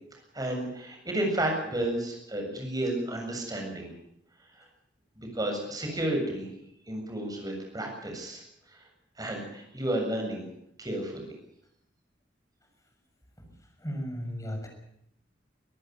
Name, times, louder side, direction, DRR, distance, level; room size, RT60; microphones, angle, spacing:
voice 1, 0.3-3.9 4.6-4.7 5.2-6.5 6.9-8.4 8.7-8.8 9.2-10.5 10.8-11.3, right 1 dB, 20° right, 2 dB, 7.4 m, -32 dB
voice 2, 13.8-14.7, equal, 20° left, 3 dB, 6.5 m, -34 dB
25.0 x 14.5 x 9.4 m, 0.75 s
head